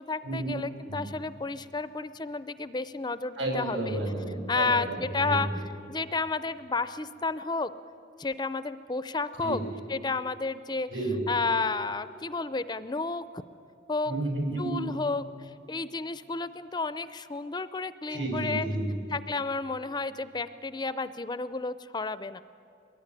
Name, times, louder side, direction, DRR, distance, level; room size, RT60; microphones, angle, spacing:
voice 1, 0.0-4.0 4.5-5.5 5.9-7.7 8.2-9.6 9.9-10.9 11.3-13.3 13.9-14.1 14.6-18.7 19.1-22.4, left 3 dB, 20° left, 13 dB, 0.5 m, -31 dB
voice 2, 3.4-5.5 9.4-9.6 10.9-11.2 14.1-14.9 18.1-18.9, right 1 dB, 75° right, 1 dB, 7.1 m, -31 dB
23.0 x 20.5 x 9.8 m, 2.6 s
head